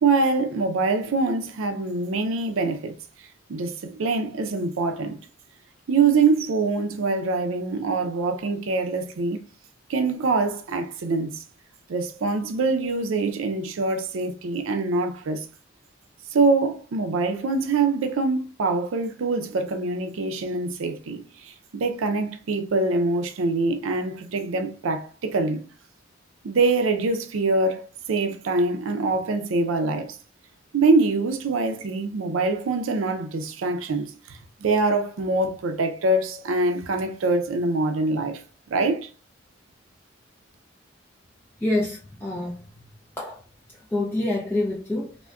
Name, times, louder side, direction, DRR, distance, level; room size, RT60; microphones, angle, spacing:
voice 1, 0.0-5.2 5.9-9.4 9.9-11.4 11.9-15.5 16.3-25.6 26.4-30.2 30.7-38.4 38.7-39.1, right 3 dB, 85° right, 0.4 m, -24 dB
voice 2, 41.6-42.9 43.2-43.4 43.9-45.1, left 2 dB, 10° left, 0.3 m, -27 dB
3.5 x 2.1 x 2.3 m
head